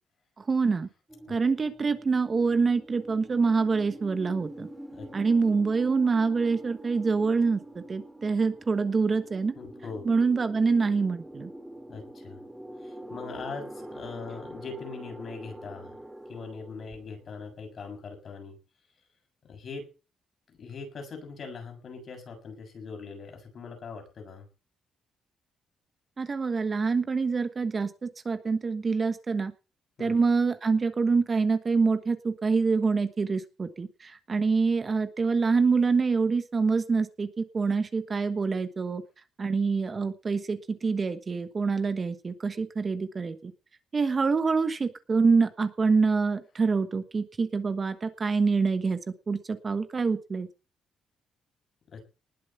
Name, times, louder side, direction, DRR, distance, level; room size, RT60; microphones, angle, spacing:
voice 1, 0.4-0.9 1.3-4.7 5.1-9.5 10.0-11.5 26.2-29.5 30.0-39.0 39.4-43.5 43.9-49.0 49.3-50.5, right 4 dB, 30° right, 9 dB, 1.3 m, -26 dB
sound 1, 1.1-18.0, right 1 dB, 5° right, 3.2 m, -45 dB
voice 2, 4.9-5.3 9.5-10.1 11.9-12.4 12.8-16.0 16.3-18.6 19.4-19.9 20.6-24.5 30.0-30.2 51.9-52.0, left 4 dB, 45° left, 4 dB, 7.0 m, -41 dB
20.0 x 7.4 x 7.0 m, 0.34 s
cardioid pair, 135°, 0 cm